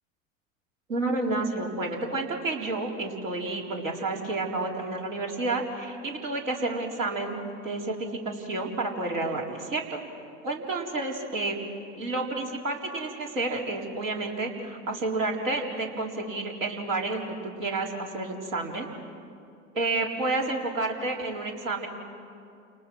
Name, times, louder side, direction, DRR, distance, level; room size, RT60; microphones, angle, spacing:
voice 1, 0.9-7.4 7.6-10.0 10.4-11.6 12.0-18.9 19.7-21.9, right 2 dB, 85° right, -1 dB, 4.3 m, -30 dB
29.5 x 28.5 x 6.3 m, 2.4 s
hypercardioid pair, 85°, 38 cm